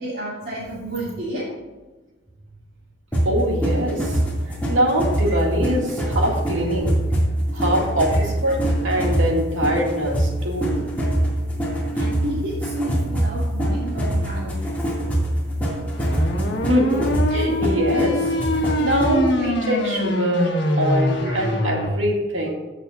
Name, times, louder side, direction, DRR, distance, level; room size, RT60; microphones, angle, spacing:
voice 1, 0.0-1.5 5.2-5.4 8.1-8.2 9.7-9.8 11.9-14.8 21.2-21.4, right 1 dB, 50° right, -9 dB, 2.7 m, -30 dB
sound 1, 3.1-19.3, right 1 dB, 10° left, 2.4 m, -24 dB
voice 2, 3.2-4.2 4.7-7.0 7.5-10.2 10.4-10.9 16.7-18.3 18.6-20.5 20.8-22.5, equal, 90° right, 0 dB, 2.3 m, -23 dB
sound 2, 15.9-21.9, left 1 dB, 65° left, 1.5 m, -24 dB
16.0 x 6.5 x 2.6 m, 1.3 s
head